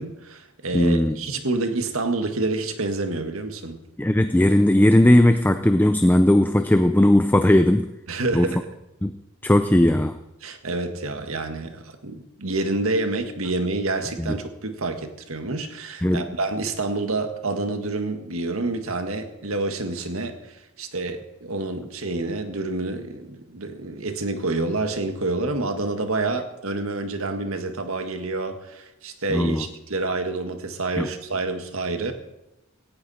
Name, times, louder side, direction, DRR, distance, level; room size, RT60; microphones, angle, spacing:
voice 1, 0.0-3.8 8.1-8.7 10.4-32.1, right 2 dB, 75° right, 7 dB, 1.7 m, -28 dB
voice 2, 0.7-1.2 4.0-7.9 8.3-8.5 9.0-10.2 14.2-14.3 16.0-16.3 29.3-29.7 31.0-31.1, left 1 dB, 10° left, 9 dB, 0.5 m, -18 dB
18.0 x 14.5 x 4.2 m, 0.94 s
head